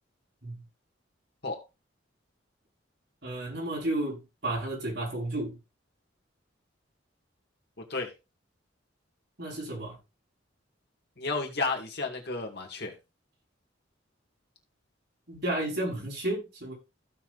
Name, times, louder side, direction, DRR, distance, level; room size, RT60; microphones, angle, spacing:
voice 1, 3.2-5.6 9.4-10.0 15.3-16.7, right 1 dB, 60° right, 5.1 m, -32 dB
voice 2, 11.2-12.9, left 3 dB, 55° left, 2.2 m, -32 dB
15.5 x 5.9 x 2.6 m
head